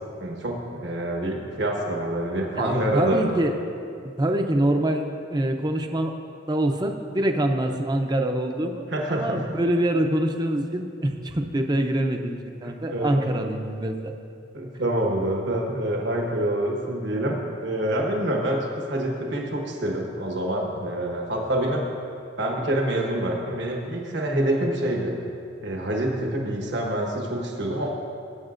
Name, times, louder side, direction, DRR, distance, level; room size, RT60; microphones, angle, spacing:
voice 1, 0.2-3.2 8.9-9.4 12.6-13.3 14.5-21.8 22.4-25.1 25.6-27.9, right 1 dB, 65° right, 0 dB, 1.3 m, -26 dB
voice 2, 2.5-3.5 4.2-6.1 6.5-14.1, right 1 dB, 20° right, 4 dB, 0.6 m, -25 dB
17.5 x 8.5 x 2.5 m, 2.6 s
head